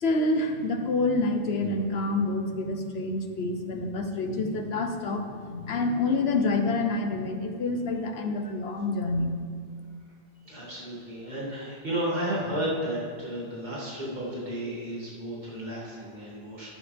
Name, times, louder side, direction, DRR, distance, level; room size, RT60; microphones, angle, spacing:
voice 1, 0.0-9.3, left 2 dB, 75° left, 6 dB, 1.2 m, -27 dB
voice 2, 10.4-16.7, right 1 dB, 45° right, -7 dB, 2.9 m, -33 dB
12.0 x 10.0 x 3.5 m, 2.1 s
omnidirectional pair, 1.0 m